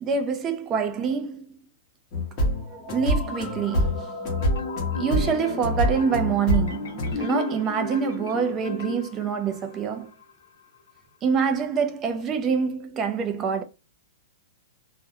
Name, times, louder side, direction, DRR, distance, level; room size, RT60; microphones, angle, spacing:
voice 1, 0.0-1.6 2.7-4.1 5.0-10.1 11.2-13.6, right 6 dB, 15° right, 0.3 m, -26 dB
sound 1, 2.1-7.1, equal, 25° left, 0.8 m, -26 dB
Marimba xylophone, 4.4-9.6, left 4 dB, 85° left, 0.9 m, -34 dB
2.3 x 2.1 x 2.7 m
supercardioid pair, 175°, 0 cm